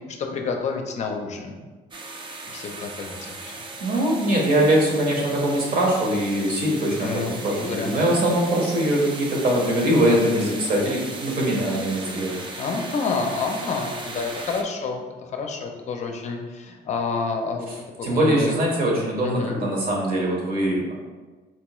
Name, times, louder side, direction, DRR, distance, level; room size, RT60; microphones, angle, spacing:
voice 1, 0.2-1.5 2.5-3.5 7.0-7.9 12.6-17.7 18.0-18.6 18.8-18.9 19.2-19.6, left 4 dB, 45° left, 3 dB, 0.5 m, -29 dB
sound 1, 1.9-14.6, right 3 dB, 30° right, 0.4 m, -37 dB
voice 2, 3.8-12.4 18.0-20.9, right 1 dB, 55° right, -2 dB, 1.1 m, -22 dB
4.2 x 2.2 x 3.0 m, 1.3 s
cardioid pair, 110°, 17 cm